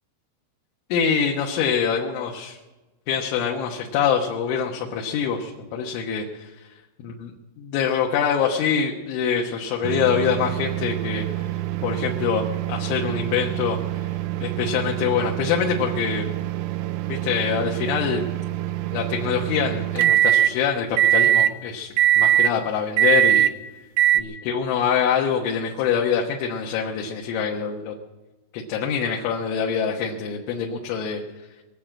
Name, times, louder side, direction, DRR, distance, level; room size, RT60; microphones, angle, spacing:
voice 1, 0.9-2.6 3.1-6.5 7.0-7.3 7.6-11.3 11.8-14.0 14.4-16.3 17.1-18.3 18.9-23.5 24.2-28.0 28.5-31.2, left 7 dB, 75° left, 0 dB, 3.4 m, -25 dB
sound 1, 9.8-20.5 21.0-21.5 22.0-22.5 23.0-23.5 24.0-24.2, right 12 dB, 80° right, 2.9 m, -23 dB
22.0 x 7.5 x 8.7 m, 1.1 s
omnidirectional pair, 5.9 m